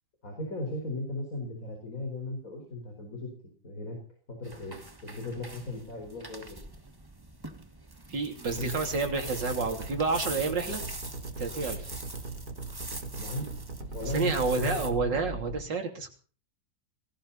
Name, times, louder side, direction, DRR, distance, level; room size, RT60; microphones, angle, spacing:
voice 1, 0.2-3.3 3.6-4.0 4.3-4.8 5.0-6.6 13.2-13.5 13.9-15.2, left 1 dB, 45° left, 2 dB, 5.2 m, -36 dB
sound 1, 4.4-14.9, right 2 dB, 15° right, 1.7 m, -43 dB
voice 2, 8.1-10.8 11.4-11.9 14.1-16.1, right 4 dB, 75° right, 4 dB, 3.8 m, -29 dB
sound 2, 8.5-15.6, right 3 dB, 55° right, 4.0 m, -39 dB
19.5 x 18.0 x 4.2 m, 0.40 s
omnidirectional pair, 2.0 m